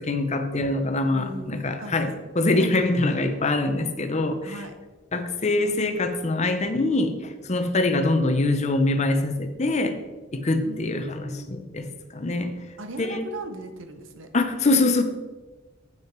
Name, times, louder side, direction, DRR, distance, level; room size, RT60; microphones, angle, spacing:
voice 1, 0.0-4.5 5.1-7.2 7.4-10.0 10.3-11.9 12.1-12.5 13.0-13.2 14.3-15.0, left 2 dB, 35° left, 8 dB, 0.8 m, -24 dB
voice 2, 1.1-2.0 4.4-4.8 10.6-11.5 12.8-14.3, right 1 dB, 75° right, 7 dB, 1.0 m, -38 dB
9.0 x 6.3 x 4.5 m, 1.2 s
head